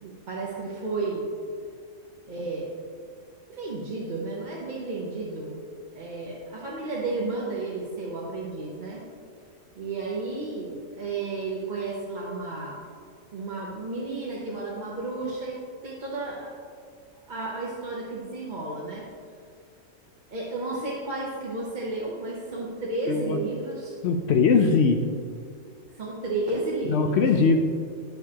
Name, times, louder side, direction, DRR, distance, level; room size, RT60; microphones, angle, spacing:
voice 1, 0.0-1.3 2.3-2.7 3.5-5.6 5.9-9.0 9.8-12.8 13.3-16.5 17.3-19.1 20.3-24.0 26.0-27.2, right 3 dB, 40° right, -5 dB, 0.9 m, -32 dB
voice 2, 23.1-23.4 24.0-25.0 26.9-27.6, left 4 dB, 65° left, 5 dB, 0.7 m, -21 dB
9.3 x 7.2 x 2.8 m, 2.2 s
omnidirectional pair, 1.4 m